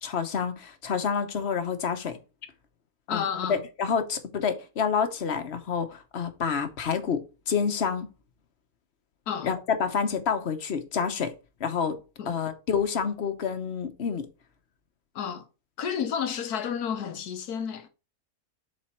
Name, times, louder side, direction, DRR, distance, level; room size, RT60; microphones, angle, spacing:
voice 1, 0.0-2.2 3.1-8.1 9.4-11.3 11.6-12.0 12.3-14.3, left 6 dB, 50° left, 1.1 m, -28 dB
voice 2, 3.1-3.6 9.3-9.5 12.2-12.3 15.1-15.4 15.8-17.9, left 7 dB, 85° left, 1.5 m, -31 dB
7.5 x 3.9 x 4.4 m
omnidirectional pair, 1.6 m